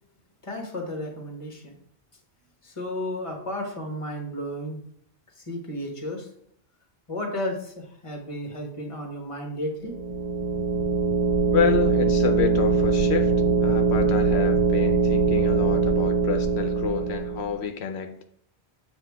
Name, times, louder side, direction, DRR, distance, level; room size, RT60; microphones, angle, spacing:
voice 1, 0.4-1.8 2.6-4.8 5.4-6.3 7.1-9.9, left 1 dB, 30° left, 2 dB, 1.3 m, -33 dB
sound 1, 9.8-17.6, right 4 dB, 45° right, 0.6 m, -22 dB
voice 2, 11.5-13.3 13.6-18.2, left 7 dB, 80° left, 6 dB, 0.9 m, -28 dB
7.8 x 2.8 x 4.6 m, 0.68 s
omnidirectional pair, 1.1 m